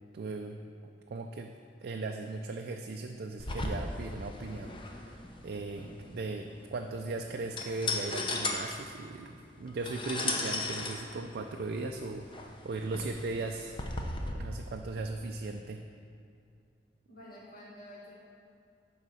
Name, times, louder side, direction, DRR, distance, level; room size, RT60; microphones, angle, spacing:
voice 1, 0.1-0.6 1.1-1.5 1.8-13.8 14.3-15.8, right 3 dB, 55° right, 3 dB, 0.4 m, -38 dB
sound 1, 3.4-14.3, left 2 dB, 30° left, 0.7 m, -37 dB
voice 2, 17.1-18.1, equal, 60° left, -6 dB, 2.1 m, -49 dB
9.6 x 3.9 x 6.2 m, 2.5 s
head